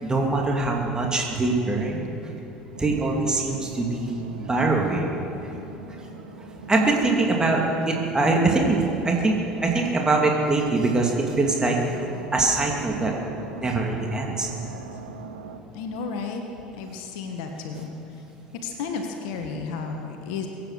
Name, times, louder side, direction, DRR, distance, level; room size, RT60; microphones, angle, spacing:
voice 1, 0.0-2.1 2.8-5.1 5.4-5.5 6.7-11.9 12.3-13.1 13.5-14.5, right 3 dB, 15° right, 0 dB, 2.5 m, -23 dB
sound 1, 2.7-15.6, right 4 dB, 85° right, 0.9 m, -40 dB
voice 2, 15.7-16.4 16.7-17.9 18.6-20.5, left 5 dB, 65° left, 4 dB, 1.4 m, -32 dB
22.5 x 9.0 x 6.5 m, 2.9 s
hypercardioid pair, 65°, 4 cm